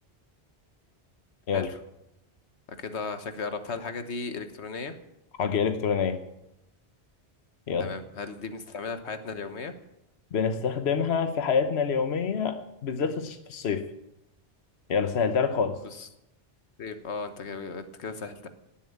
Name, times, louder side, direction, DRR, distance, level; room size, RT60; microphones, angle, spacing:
voice 1, 2.7-5.0 7.8-9.7 15.8-16.1 16.8-18.5, left 4 dB, 90° left, 9 dB, 1.5 m, -36 dB
voice 2, 5.4-6.2 7.7-7.9 10.3-12.6 12.8-13.8 14.9-15.8, left 6 dB, 75° left, 8 dB, 1.2 m, -26 dB
18.5 x 7.3 x 8.7 m, 0.86 s
omnidirectional pair, 1.1 m